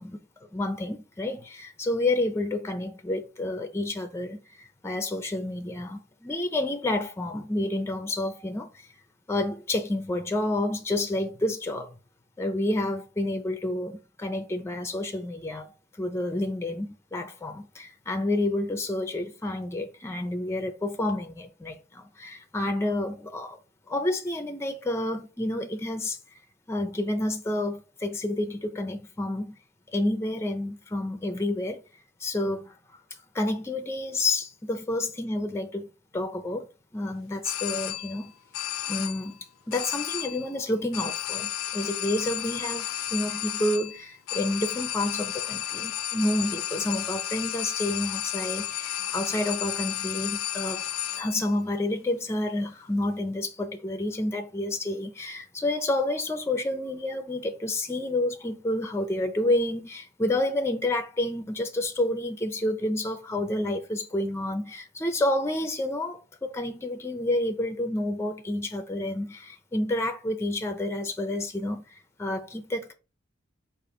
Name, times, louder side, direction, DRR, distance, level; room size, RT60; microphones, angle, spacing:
voice 1, 0.5-4.4 4.8-8.7 9.3-11.9 12.4-15.6 16.0-23.6 23.9-26.2 26.7-29.5 29.9-31.8 32.2-32.7 33.4-35.8 36.1-36.6 36.9-38.3 38.9-39.4 39.7-50.8 51.2-71.8 72.2-72.9, left 1 dB, 15° left, 0.5 m, -29 dB
sound 1, 37.4-38.3 38.5-39.4 39.7-40.5 40.9-51.5, left 12 dB, 75° left, 0.4 m, -33 dB
5.1 x 2.5 x 3.8 m
head